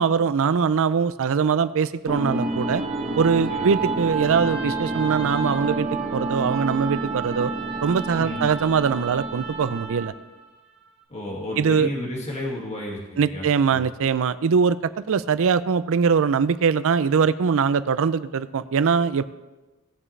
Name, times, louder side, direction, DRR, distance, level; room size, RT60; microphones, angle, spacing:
voice 1, 0.0-2.8 3.2-7.5 7.8-10.1 11.6-11.9 13.2-14.8 15.1-19.3, right 6 dB, 65° right, 15 dB, 0.5 m, -22 dB
sound 1, 2.1-10.3, right 3 dB, 30° right, 1.6 m, -28 dB
voice 2, 11.1-13.4 13.7-13.9, left 1 dB, 30° left, -3 dB, 2.1 m, -32 dB
18.5 x 7.4 x 3.3 m, 1.2 s
head